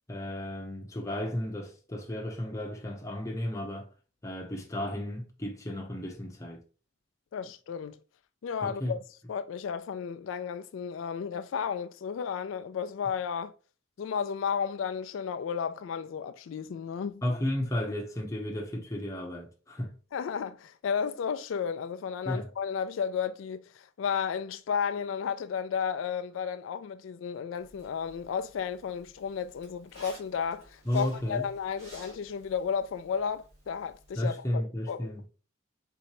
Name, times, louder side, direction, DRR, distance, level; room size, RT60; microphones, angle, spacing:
voice 1, 0.1-3.9 4.2-6.6 8.6-8.9 17.2-19.9 22.2-22.5 30.9-31.5 34.1-35.2, left 1 dB, 15° left, 0.8 m, -33 dB
voice 2, 7.3-8.0 8.4-9.0 9.3-13.5 14.0-17.2 20.1-35.3, left 7 dB, 90° left, 0.3 m, -33 dB
Zipper (clothing), 27.6-34.3, right 1 dB, 35° right, 2.4 m, -54 dB
4.3 x 3.8 x 3.0 m
head